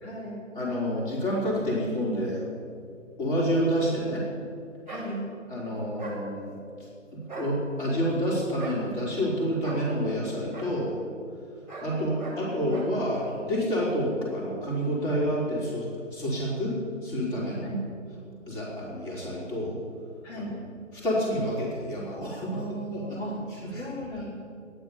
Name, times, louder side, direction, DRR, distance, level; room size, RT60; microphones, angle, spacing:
voice 1, 0.0-0.4 4.9-5.3 12.6-13.0 17.6-17.9 20.2-20.6 22.4-23.4 23.8-24.3, right 1 dB, 60° left, -4 dB, 4.1 m, -36 dB
voice 2, 0.5-2.5 3.2-4.3 5.5-6.5 6.8-11.0 11.8-16.8 17.0-17.8 18.5-19.8 20.3-20.5 20.9-23.2 23.5-23.9, equal, 40° left, -5 dB, 4.4 m, -29 dB
sound 1, 4.9-5.1 6.0-6.2 7.2-7.5 8.6-8.8 9.6-9.8 10.5-10.7 11.7-11.9 12.2-12.4 12.7-12.9, right 3 dB, 5° left, 2.0 m, -38 dB
13.0 x 11.0 x 7.2 m, 2.4 s
figure-of-eight pair, 145°, 38 cm